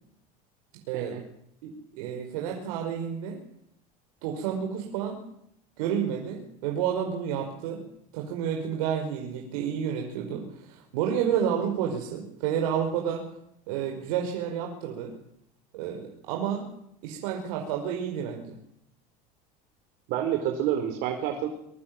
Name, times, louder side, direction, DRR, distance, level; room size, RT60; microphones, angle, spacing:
voice 1, 0.9-1.2 1.6-3.4 4.2-5.2 5.8-7.8 8.1-13.2 13.7-15.1 15.7-16.7 17.0-18.6, right 8 dB, 85° right, 2 dB, 5.2 m, -30 dB
voice 2, 20.1-21.5, right 10 dB, 60° right, 4 dB, 4.7 m, -28 dB
25.0 x 23.5 x 7.9 m, 0.76 s
cardioid pair, 140°, 18 cm